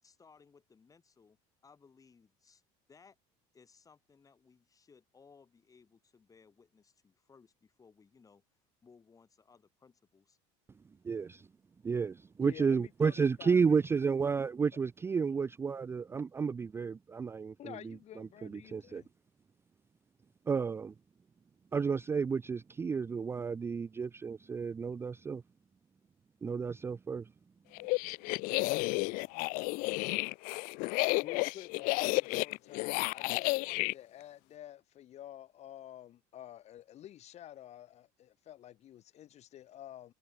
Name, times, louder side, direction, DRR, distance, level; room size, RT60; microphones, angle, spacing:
voice 1, 0.0-1.4 1.6-2.6 2.9-3.2 3.5-8.4 8.8-10.4, left 5 dB, 25° left, 7.5 m, -62 dB
voice 2, 11.0-11.5 11.8-19.0 20.5-20.9 21.7-25.4 26.4-27.3, right 5 dB, 15° right, 0.4 m, -32 dB
voice 3, 12.4-14.1 15.2-15.4 17.6-19.1 31.2-40.1, left 12 dB, 45° left, 5.3 m, -50 dB
sound 1, 27.8-33.9, left 27 dB, 70° left, 0.7 m, -32 dB
cardioid pair, 120°, 15 cm